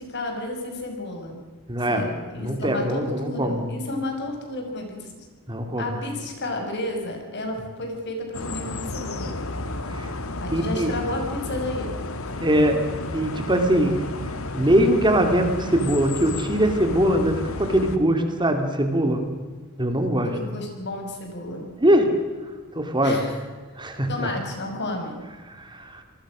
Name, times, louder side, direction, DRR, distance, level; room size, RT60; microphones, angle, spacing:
voice 1, 0.0-1.4 1.8-5.3 5.8-9.4 10.4-11.9 12.2-12.4 20.2-21.7 23.0-23.4 24.1-25.2, left 1 dB, 55° left, 3 dB, 5.9 m, -32 dB
voice 2, 1.7-2.0 2.4-3.7 5.5-5.9 10.0-10.1 10.5-10.9 12.4-12.8 13.1-14.0 14.5-19.2 19.8-20.3 21.8-22.1 22.7-23.2 23.8-24.3 25.5-26.0, right 1 dB, 20° right, 6 dB, 2.6 m, -22 dB
sound 1, 8.3-18.0, left 2 dB, 75° left, 1.9 m, -32 dB
28.0 x 20.0 x 6.3 m, 1.4 s
head